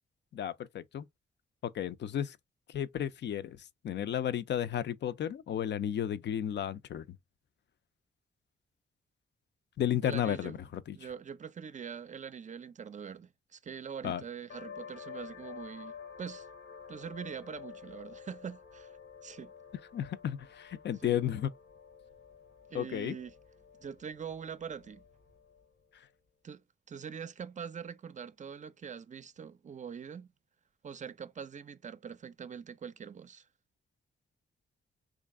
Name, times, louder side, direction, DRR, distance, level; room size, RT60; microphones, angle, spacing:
voice 1, 0.3-1.1 1.7-2.4 2.7-3.6 3.8-7.0 9.8-11.0 14.0-14.2 19.9-21.5 22.7-23.1, left 10 dB, 65° left, 0.4 m, -33 dB
voice 2, 10.0-10.6 10.9-16.5 16.9-19.0 19.2-19.5 21.0-21.2 22.7-23.3 23.8-25.0 26.4-26.6 26.9-30.3 30.8-33.5, right 7 dB, 40° right, 0.4 m, -43 dB
sound 1, 14.5-25.8, left 7 dB, 85° left, 1.0 m, -50 dB
3.1 x 2.5 x 3.6 m
cardioid pair, 65°, 20 cm